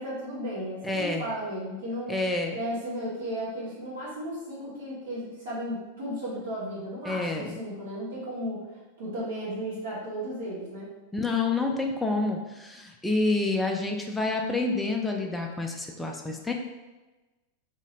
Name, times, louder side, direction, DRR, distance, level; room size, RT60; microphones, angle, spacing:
voice 1, 0.0-2.2 2.5-8.6 9.0-10.9, equal, 60° right, -7 dB, 0.9 m, -34 dB
voice 2, 0.8-1.3 2.1-2.6 7.0-7.6 11.1-16.5, left 3 dB, 5° left, 1 dB, 0.3 m, -28 dB
2.8 x 2.7 x 2.9 m, 1.1 s
figure-of-eight pair, 90°, 0 cm